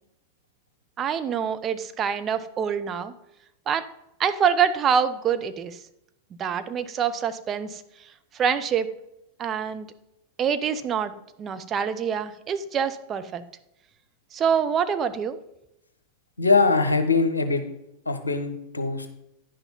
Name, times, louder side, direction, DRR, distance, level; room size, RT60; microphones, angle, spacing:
voice 1, 1.0-3.1 3.7-3.8 4.2-5.8 6.4-7.8 8.3-8.9 9.4-9.9 10.4-11.1 11.4-13.4 14.3-15.4, right 7 dB, 25° right, 9 dB, 0.6 m, -25 dB
voice 2, 16.4-17.6 18.1-19.1, left 4 dB, 80° left, 8 dB, 0.9 m, -22 dB
10.0 x 6.0 x 5.3 m, 0.83 s
figure-of-eight pair, 90°, 0 cm